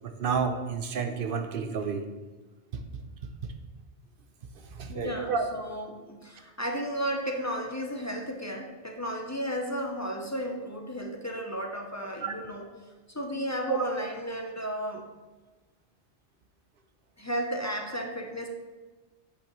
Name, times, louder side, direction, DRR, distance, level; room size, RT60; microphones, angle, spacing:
voice 1, 0.0-2.0 2.7-3.5 4.6-5.5 12.2-12.3 13.7-13.9, right 5 dB, 60° right, 7 dB, 0.7 m, -31 dB
voice 2, 4.9-12.7 13.1-15.0 17.2-18.5, equal, 20° left, 2 dB, 0.4 m, -33 dB
8.5 x 5.8 x 3.0 m, 1.3 s
omnidirectional pair, 1.2 m